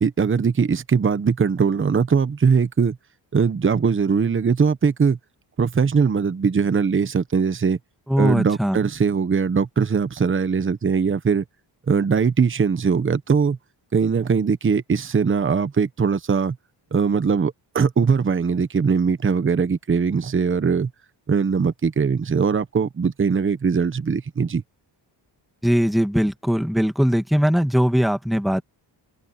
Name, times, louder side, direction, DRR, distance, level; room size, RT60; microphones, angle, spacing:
voice 1, 0.0-3.0 3.3-5.2 5.6-7.8 8.2-11.4 11.9-13.6 13.9-16.6 16.9-20.9 21.3-24.6, right 5 dB, 25° right, 1.0 m, -21 dB
voice 2, 8.1-8.8 25.6-28.6, equal, ahead, 1.8 m, -20 dB
cardioid pair, 110°, 44 cm